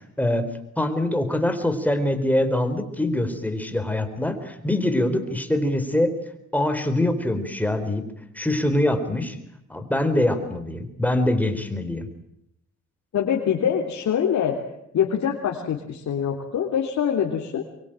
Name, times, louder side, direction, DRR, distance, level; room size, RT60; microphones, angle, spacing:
voice 1, 0.2-0.5 0.8-6.1 6.5-8.1 8.3-9.4 9.7-12.1, left 1 dB, 5° left, 8 dB, 4.1 m, -24 dB
voice 2, 13.1-14.5 14.9-17.6, left 8 dB, 65° left, 0 dB, 3.4 m, -24 dB
24.0 x 23.5 x 9.0 m, 0.77 s
cardioid pair, 90°, 30 cm